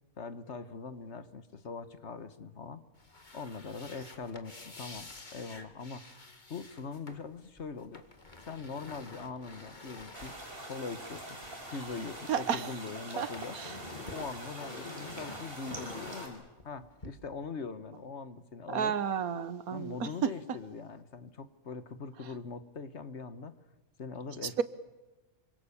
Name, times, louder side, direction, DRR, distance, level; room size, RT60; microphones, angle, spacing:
voice 1, 0.2-2.8 3.3-6.2 6.5-8.0 8.4-10.4 10.7-11.4 11.7-13.6 14.1-18.9 19.7-23.6 24.0-24.6, left 4 dB, 55° left, 1.5 m, -42 dB
sound 1, 2.9-12.7 13.0-17.1, left 2 dB, 30° left, 2.2 m, -49 dB
sound 2, 10.1-16.3, right 1 dB, 40° right, 5.3 m, -44 dB
voice 2, 12.3-12.7 13.2-13.8 18.7-20.6 24.4-24.6, right 7 dB, 80° right, 1.6 m, -32 dB
27.0 x 25.0 x 7.1 m
omnidirectional pair, 1.5 m